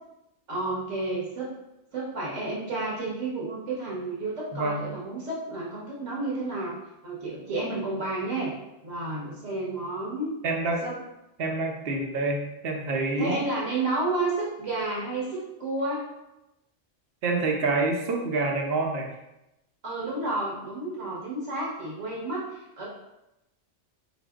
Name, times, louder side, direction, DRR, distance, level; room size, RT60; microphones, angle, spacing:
voice 1, 0.5-1.5 1.9-8.6 8.8-10.4 10.8-11.0 13.2-16.1 19.8-22.9, right 2 dB, 85° right, -5 dB, 1.6 m, -31 dB
voice 2, 4.5-4.8 10.4-10.8 11.4-13.4 17.2-19.1, right 3 dB, 60° right, 1 dB, 0.8 m, -27 dB
4.0 x 3.3 x 2.3 m, 0.91 s
omnidirectional pair, 1.2 m